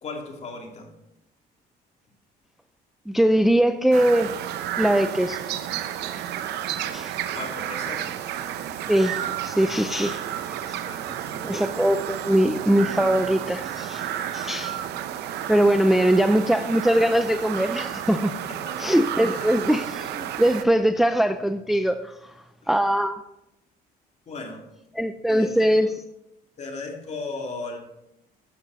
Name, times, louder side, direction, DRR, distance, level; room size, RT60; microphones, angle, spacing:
voice 1, 0.0-0.9 7.3-8.1 10.8-11.5 18.5-19.5 24.3-24.7 25.3-25.9 26.6-27.8, left 3 dB, 40° left, 2.5 m, -37 dB
voice 2, 3.1-4.3 4.8-5.7 6.1-6.2 6.9-7.1 8.9-10.2 10.5-10.8 11.4-14.8 15.5-18.3 18.8-22.3 22.7-23.2 25.0-25.9, right 1 dB, ahead, 0.4 m, -22 dB
sound 1, 3.9-20.6, right 10 dB, 75° right, 0.7 m, -32 dB
11.5 x 7.1 x 4.0 m
cardioid pair, 110°, 17 cm